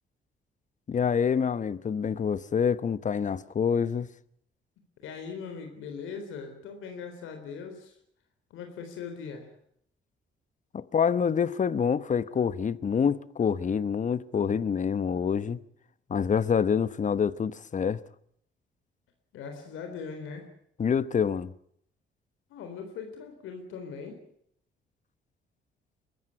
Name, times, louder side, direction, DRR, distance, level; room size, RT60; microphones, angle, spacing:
voice 1, 0.9-4.1 10.7-15.6 16.1-18.0 20.8-21.5, left 7 dB, 40° left, 1.0 m, -26 dB
voice 2, 5.0-8.0 8.5-9.5 19.3-20.5 22.5-24.2, left 5 dB, 90° left, 3.9 m, -40 dB
23.0 x 14.0 x 9.7 m
cardioid pair, 90°, 20 cm